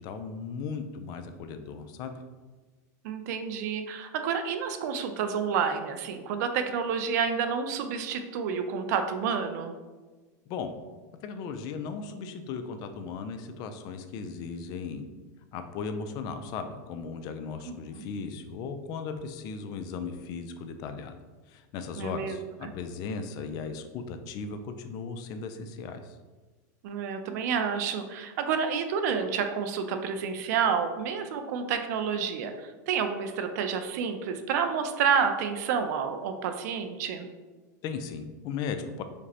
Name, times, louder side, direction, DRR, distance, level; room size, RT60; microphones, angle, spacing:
voice 1, 0.0-2.1 10.5-10.7 11.2-15.0 15.5-21.2 21.5-26.2 37.8-39.0, left 5 dB, 45° left, 8 dB, 0.3 m, -37 dB
voice 2, 3.0-9.7 17.7-18.1 22.0-22.4 22.6-22.7 26.8-37.3, right 6 dB, 65° right, 7 dB, 0.4 m, -29 dB
5.0 x 2.0 x 2.8 m, 1.3 s
supercardioid pair, 135°, 9 cm